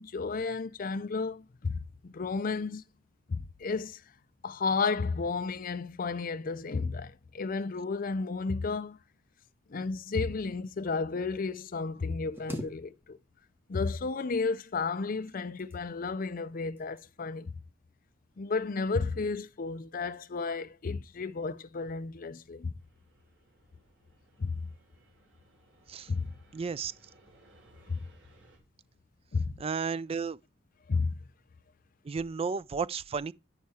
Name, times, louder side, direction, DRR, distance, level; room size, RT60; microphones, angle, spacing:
voice 1, 0.0-2.8 3.3-4.0 4.4-9.0 9.7-13.2 13.7-17.5 18.4-22.7 24.4-24.7 26.1-26.3 27.9-28.0 29.3-29.5 30.9-31.1, left 4 dB, 50° left, 0.5 m, -32 dB
sound 1, 12.3-13.4 13.7-14.4 15.3-16.1 16.8-17.1 17.5-17.8, equal, 10° right, 1.9 m, -44 dB
Fixed-wing aircraft airplane, 22.8-28.6, right 1 dB, 80° right, 3.3 m, -62 dB
voice 2, 26.5-26.9 29.6-30.4 32.1-33.3, right 5 dB, 30° right, 0.4 m, -33 dB
11.0 x 4.7 x 4.2 m
head